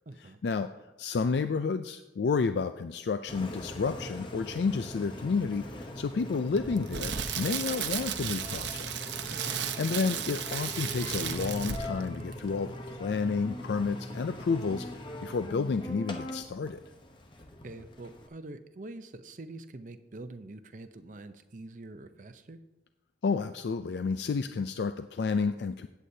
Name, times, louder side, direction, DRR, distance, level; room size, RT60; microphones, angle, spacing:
voice 1, 0.1-0.4 9.3-9.6 17.6-22.6, right 2 dB, 45° right, 10 dB, 0.6 m, -45 dB
voice 2, 1.0-8.9 9.8-16.8 23.2-25.9, left 4 dB, 70° left, 9 dB, 0.4 m, -30 dB
Engine, 3.3-18.3, left 1 dB, 25° left, 0.9 m, -41 dB
Crackle, 6.6-12.0 12.3-12.5, right 8 dB, 85° right, 0.8 m, -34 dB
16.0 x 8.2 x 2.7 m, 0.99 s
head